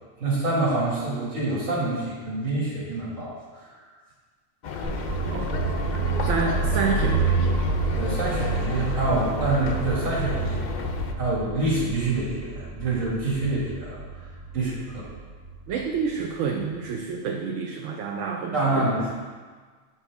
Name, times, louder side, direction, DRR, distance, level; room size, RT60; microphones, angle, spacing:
voice 1, 0.2-3.3 3.6-3.7 8.0-10.6 11.2-14.0 14.5-15.1 18.5-19.1, right 2 dB, 90° right, -7 dB, 2.4 m, -26 dB
sound 1, 4.6-11.1, left 5 dB, 65° left, 0.4 m, -33 dB
sound 2, 4.8-16.8, right 4 dB, 45° right, 0.5 m, -29 dB
voice 2, 6.3-7.6 15.7-18.8, right 5 dB, 70° right, 2 dB, 0.9 m, -28 dB
7.1 x 5.5 x 3.5 m, 1.5 s
omnidirectional pair, 1.4 m